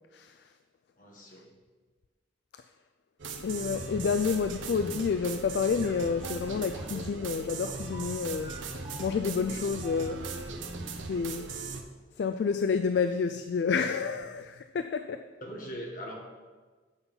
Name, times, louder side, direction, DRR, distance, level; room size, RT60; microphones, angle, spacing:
voice 1, 1.0-1.5 15.4-16.1, equal, 45° left, 1.6 m, -41 dB
sound 1, 3.2-11.8, right 4 dB, 90° right, 0.8 m, -39 dB
voice 2, 3.4-8.5 9.0-10.3 11.0-11.6 12.2-15.3, left 5 dB, 65° left, 0.3 m, -29 dB
sound 2, 5.8-11.0, equal, 20° right, 1.1 m, -46 dB
8.1 x 5.7 x 5.5 m
head